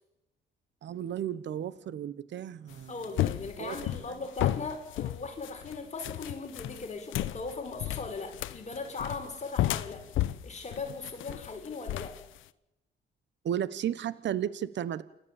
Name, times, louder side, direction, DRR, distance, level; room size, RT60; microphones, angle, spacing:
voice 1, 0.8-2.9 3.6-3.8 13.4-15.0, right 10 dB, 65° right, 17 dB, 1.2 m, -33 dB
sound 1, 2.7-12.4, left 14 dB, 85° left, 0.9 m, -33 dB
voice 2, 2.9-12.2, left 3 dB, 35° left, 4 dB, 5.5 m, -39 dB
29.0 x 13.0 x 9.0 m, 0.89 s
cardioid pair, 90°, 20 cm